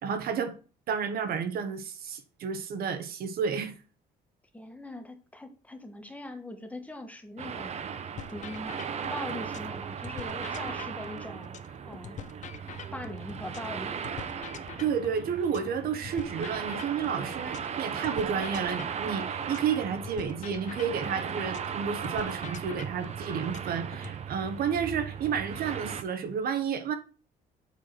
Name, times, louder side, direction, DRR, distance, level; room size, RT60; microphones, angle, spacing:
voice 1, 0.0-0.6 0.9-3.8 14.8-26.9, right 7 dB, 65° right, 1.2 m, -31 dB
voice 2, 4.5-7.7 8.3-8.7 9.1-11.6 11.8-12.2 12.9-14.0, left 1 dB, 10° left, 1.3 m, -41 dB
sound 1, 7.4-26.0, right 7 dB, 40° right, 0.8 m, -37 dB
sound 2, 8.2-9.7 10.0-13.7 14.0-17.7 18.0-21.7 22.0-24.2, left 9 dB, 45° left, 0.7 m, -44 dB
7.3 x 4.7 x 4.4 m
cardioid pair, 110°, 17 cm